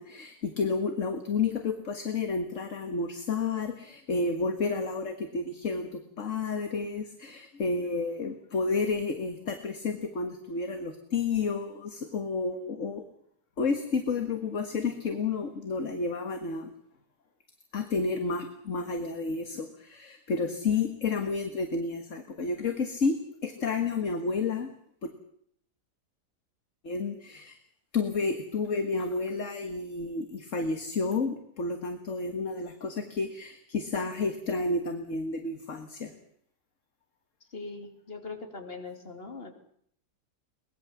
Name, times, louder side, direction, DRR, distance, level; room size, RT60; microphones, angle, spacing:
voice 1, 0.0-13.1 13.6-16.7 17.7-23.2 23.4-24.7 25.0-25.1 26.8-27.6 27.9-36.1, left 4 dB, 50° left, 7 dB, 2.0 m, -31 dB
voice 2, 37.5-39.5, left 3 dB, 35° left, 4 dB, 3.3 m, -41 dB
23.0 x 20.5 x 7.3 m, 0.66 s
omnidirectional pair, 1.7 m